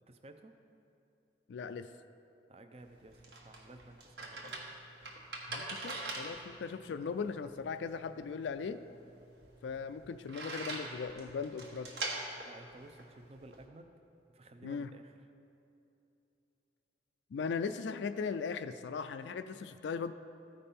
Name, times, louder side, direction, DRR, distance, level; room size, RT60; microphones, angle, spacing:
voice 1, 0.1-0.6 2.5-4.5 12.4-13.9 14.3-15.2, right 2 dB, 35° right, 7 dB, 0.5 m, -54 dB
voice 2, 1.5-1.9 5.5-8.8 9.6-11.9 14.6-14.9 17.3-20.1, left 5 dB, 80° left, 10 dB, 0.3 m, -38 dB
sound 1, 2.8-13.7, right 2 dB, 70° right, 1.3 m, -44 dB
14.5 x 5.2 x 4.2 m, 2.8 s
head